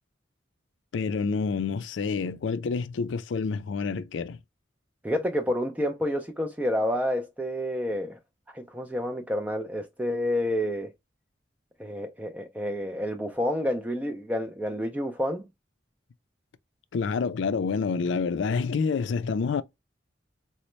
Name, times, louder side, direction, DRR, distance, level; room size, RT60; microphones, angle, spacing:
voice 1, 0.9-4.4 16.9-19.6, left 5 dB, 70° left, 0.4 m, -28 dB
voice 2, 5.0-8.2 8.5-10.9 11.8-15.5, equal, 5° right, 0.3 m, -29 dB
4.0 x 2.1 x 3.1 m
head